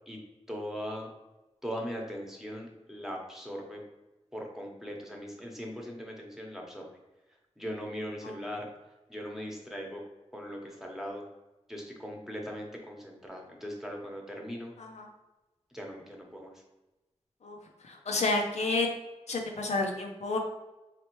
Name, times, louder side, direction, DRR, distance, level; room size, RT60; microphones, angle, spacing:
voice 1, 0.5-1.1 1.6-3.8 4.3-6.8 7.6-8.7 9.1-10.0 10.3-11.2 11.7-14.7 15.7-16.5, equal, 5° right, 0 dB, 0.9 m, -39 dB
voice 2, 14.8-15.1 17.4-18.9 19.3-20.4, left 3 dB, 85° left, 2 dB, 0.6 m, -30 dB
4.1 x 3.2 x 3.0 m, 1.0 s
wide cardioid pair, 80°, 11 cm